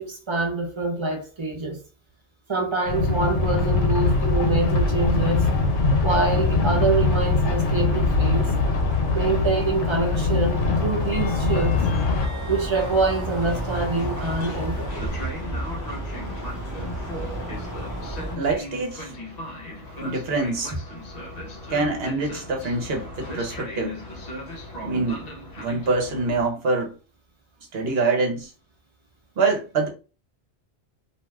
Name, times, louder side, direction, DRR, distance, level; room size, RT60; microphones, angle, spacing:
voice 1, 0.0-1.8 2.5-5.5 6.0-8.5 9.1-11.8 12.5-15.0, right 3 dB, 30° right, 0.6 m, -25 dB
sound 1, 2.9-12.3, left 3 dB, 85° left, 0.9 m, -22 dB
sound 2, 4.0-18.4, equal, 20° left, 1.1 m, -33 dB
Train, 11.0-26.4, left 1 dB, 45° left, 0.7 m, -37 dB
voice 2, 18.3-19.1 20.0-20.7 21.7-24.0 24.8-25.3 25.6-27.0 27.7-28.5 29.4-29.9, right 3 dB, 65° right, 1.0 m, -25 dB
2.5 x 2.3 x 3.2 m
omnidirectional pair, 1.2 m